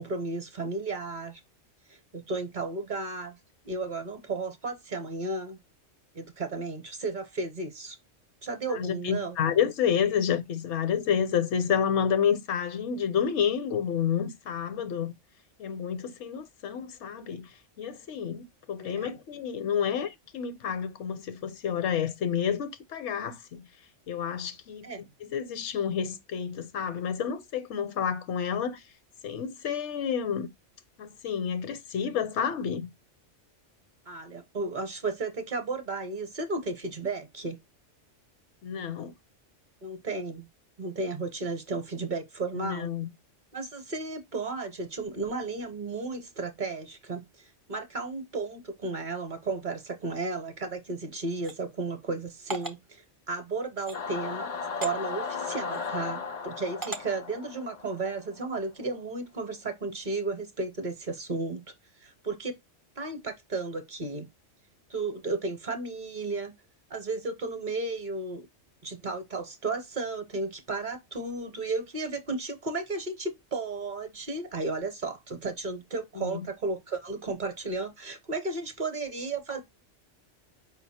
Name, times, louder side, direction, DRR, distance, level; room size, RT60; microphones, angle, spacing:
voice 1, 0.0-1.4 2.1-3.4 3.6-5.6 6.1-8.0 8.4-9.4 18.8-19.1 24.8-25.0 34.1-37.6 39.8-40.5 40.8-42.9 43.5-47.2 47.7-54.5 54.8-61.6 62.0-62.5 63.0-64.3 64.9-66.5 66.9-68.5 68.8-79.6, right 3 dB, 45° right, 0.8 m, -34 dB
voice 2, 8.7-15.1 15.6-23.7 24.1-28.8 29.2-30.5 31.0-32.9 38.6-39.1 42.5-43.1 76.1-76.5, left 8 dB, 70° left, 0.9 m, -29 dB
sound 1, 51.4-51.6 52.5-52.8 53.8-54.0 54.8-54.9 55.7-55.9 56.8-57.0, right 3 dB, 30° right, 0.4 m, -37 dB
Singing / Musical instrument, 53.9-58.6, left 5 dB, 50° left, 0.5 m, -36 dB
5.1 x 2.2 x 4.0 m
omnidirectional pair, 1.3 m